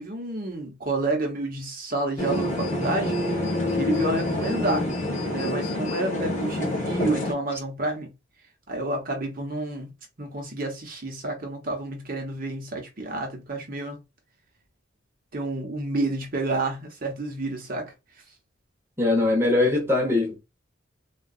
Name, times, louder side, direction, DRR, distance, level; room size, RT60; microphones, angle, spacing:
voice 1, 0.0-3.5 3.7-4.9 5.3-8.1 8.7-9.9 10.2-14.0 15.3-17.9, right 2 dB, 45° right, 0.8 m, -29 dB
sound 1, 2.2-7.3, left 1 dB, 40° left, 1.1 m, -27 dB
voice 2, 19.0-20.4, left 2 dB, 15° right, 0.8 m, -21 dB
3.6 x 2.2 x 2.3 m
head